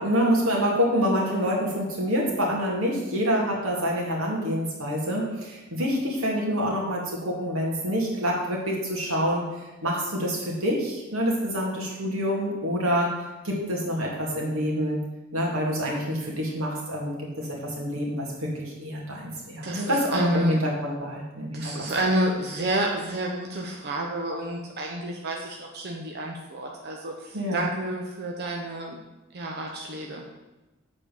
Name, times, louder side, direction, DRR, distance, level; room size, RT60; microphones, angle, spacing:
voice 1, 0.0-9.5 9.8-13.1 13.4-15.0 15.3-21.8 27.3-27.7, equal, 90° right, -2 dB, 2.2 m, -27 dB
voice 2, 19.6-20.6 21.5-29.0 29.3-30.3, right 1 dB, 50° right, 0 dB, 0.8 m, -29 dB
7.4 x 4.3 x 6.9 m, 1.1 s
head